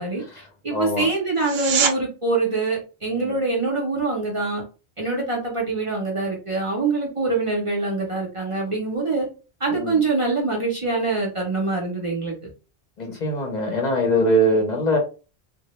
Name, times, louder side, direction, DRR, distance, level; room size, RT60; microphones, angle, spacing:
voice 1, 0.0-4.6 5.0-9.3 9.6-12.4, right 3 dB, 40° right, -3 dB, 0.5 m, -24 dB
voice 2, 0.7-1.1 3.1-3.3 9.7-10.0 13.0-15.0, equal, 50° left, 2 dB, 0.6 m, -22 dB
sound 1, 1.3-2.0 13.3-13.4, right 6 dB, 85° right, 0.8 m, -23 dB
2.1 x 2.0 x 2.8 m, 0.33 s
omnidirectional pair, 1.0 m